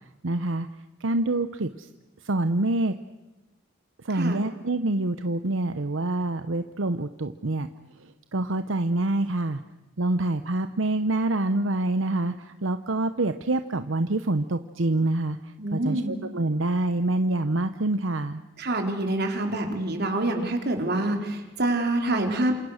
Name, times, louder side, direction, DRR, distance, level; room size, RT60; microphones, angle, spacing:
voice 1, 0.2-0.7 1.0-1.9 2.2-3.0 4.0-7.7 8.0-9.6 10.0-18.4, right 2 dB, 85° right, 10 dB, 0.9 m, -26 dB
voice 2, 4.1-4.4 15.6-16.2 18.6-22.5, right 1 dB, 55° right, 4 dB, 4.1 m, -26 dB
28.0 x 27.5 x 6.6 m, 1.1 s
head